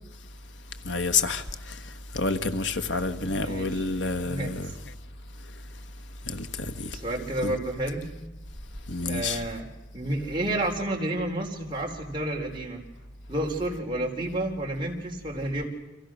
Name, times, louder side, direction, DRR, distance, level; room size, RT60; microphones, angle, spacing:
voice 1, 0.8-1.7 2.1-4.7 6.3-6.5 6.8-7.0 7.4-7.6 8.9-9.4, left 4 dB, 75° left, 1.5 m, -28 dB
voice 2, 3.2-3.8 4.2-4.5 6.9-8.0 9.0-9.7 9.9-12.8 13.3-15.7, right 1 dB, 25° right, 4.3 m, -30 dB
30.0 x 26.5 x 6.4 m
head